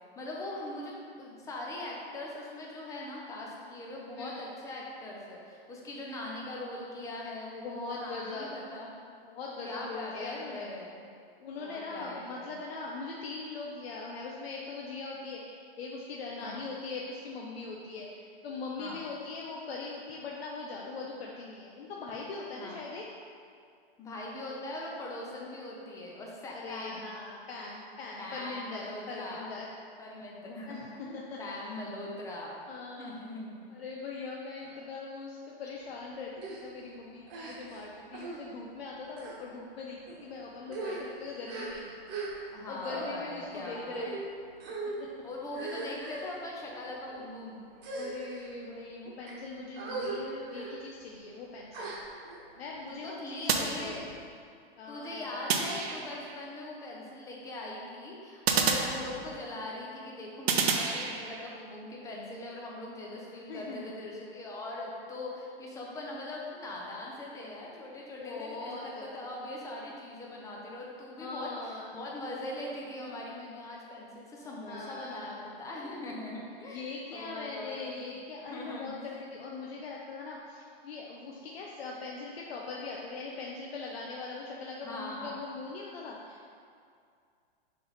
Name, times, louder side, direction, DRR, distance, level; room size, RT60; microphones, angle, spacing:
voice 1, 0.2-8.9 9.6-11.1 11.6-12.5 16.4-16.6 18.8-19.0 22.6-22.8 24.0-27.1 28.2-29.5 30.0-32.6 33.0-33.7 34.7-34.9 42.5-44.1 45.2-47.6 52.9-54.0 54.9-78.1 78.5-79.0 84.8-85.4, left 1 dB, 10° left, -3 dB, 0.6 m, -41 dB
voice 2, 7.6-8.5 9.3-10.7 11.4-23.1 26.5-29.7 30.7-30.9 31.1-31.4 32.7-33.2 33.7-41.9 42.7-44.2 44.8-45.1 47.9-51.9 52.6-54.1 54.8-55.5 63.5-63.9 68.2-69.2 71.2-72.0 74.6-75.6 76.7-86.5, left 3 dB, 75° left, -2 dB, 0.8 m, -41 dB
sound 1, 36.4-36.6 37.3-37.8 38.1-38.4 39.1-39.4 40.1-40.2 40.6-42.5 42.8-43.1 43.9-44.2 44.6-45.0 45.5-46.3 47.0-47.3 47.8-48.5 49.0-49.3 49.8-50.2 50.5-50.7 51.7-52.4, right 3 dB, 35° right, 1.2 m, -39 dB
sound 2, 53.5-54.4 55.5-56.4 58.5-59.6 60.5-61.5, right 5 dB, 80° right, 0.7 m, -30 dB
6.7 x 3.5 x 4.0 m, 2.3 s
hypercardioid pair, 145°, 30 cm